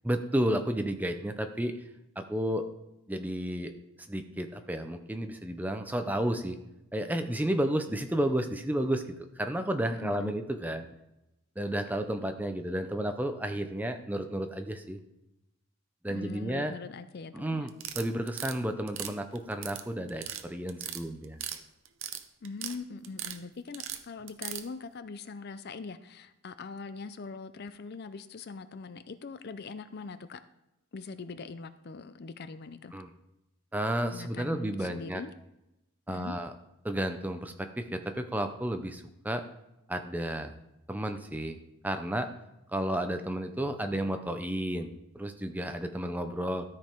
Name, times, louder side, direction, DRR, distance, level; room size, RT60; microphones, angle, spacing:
voice 1, 0.0-1.7 2.2-2.6 3.1-3.7 4.1-6.6 6.9-9.0 9.4-10.9 11.6-15.0 16.0-16.7 17.3-21.4 32.9-33.1 33.7-35.2 36.1-36.5 36.8-39.4 39.9-40.5 40.9-41.6 41.8-42.3 42.7-46.6, right 1 dB, 5° right, 7 dB, 0.5 m, -32 dB
voice 2, 10.0-10.3 16.1-17.7 22.4-30.4 30.9-33.0 34.1-35.3 36.1-36.4, left 4 dB, 45° left, 12 dB, 0.4 m, -42 dB
sound 1, 17.7-18.5 18.9-19.8 20.1-20.4 20.7-21.6 21.8-22.8 23.0-23.4 23.7-24.6, right 11 dB, 60° right, 0.7 m, -37 dB
13.0 x 5.2 x 4.5 m, 0.91 s
head